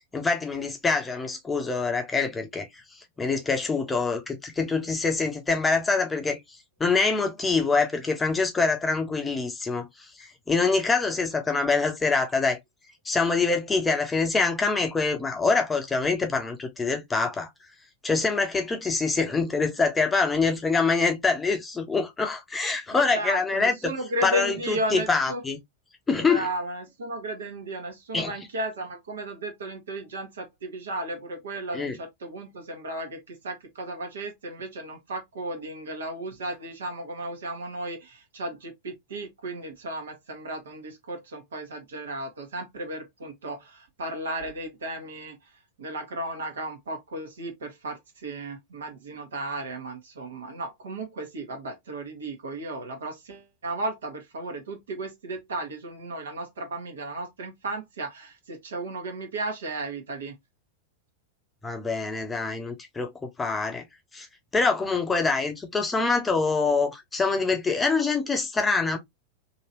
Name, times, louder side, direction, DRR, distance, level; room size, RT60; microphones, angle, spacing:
voice 1, 0.1-6.4 6.8-9.9 10.2-12.6 13.0-17.5 18.0-23.9 24.2-25.6 26.1-26.5 28.1-28.3 31.7-32.0 61.6-63.8 64.1-64.3 64.5-69.0, left 4 dB, 15° left, 0.7 m, -25 dB
voice 2, 22.9-25.4 26.1-45.4 45.8-60.3, right 1 dB, 65° right, 1.3 m, -34 dB
3.0 x 2.9 x 2.8 m
figure-of-eight pair, 90°, 0 cm